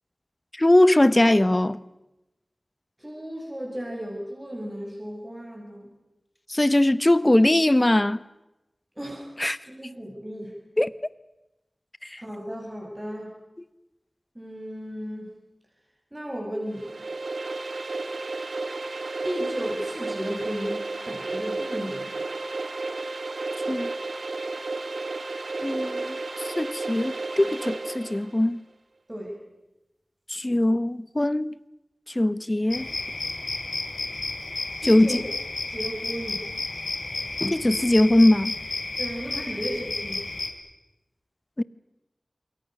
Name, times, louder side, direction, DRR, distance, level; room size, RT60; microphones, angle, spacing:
voice 1, 0.6-1.8 6.5-8.2 9.4-9.6 10.8-10.9 12.0-12.2 23.7-23.9 25.6-28.6 30.3-31.5 32.1-32.9 34.8-35.2 37.4-38.6 41.6-41.7, left 1 dB, 30° left, 1.0 m, -21 dB
voice 2, 3.0-5.9 9.0-9.3 9.6-10.5 12.2-13.4 14.3-15.3 16.1-16.9 18.7-18.9 19.2-22.1 29.1-29.4 34.8-35.2 35.7-36.4 39.0-40.3, equal, 20° right, 7.9 m, -35 dB
sound 1, 16.7-28.3, right 3 dB, 90° right, 1.9 m, -32 dB
sound 2, 32.7-40.5, left 3 dB, 80° left, 3.3 m, -32 dB
27.5 x 23.0 x 6.7 m
wide cardioid pair, 40°, 0 cm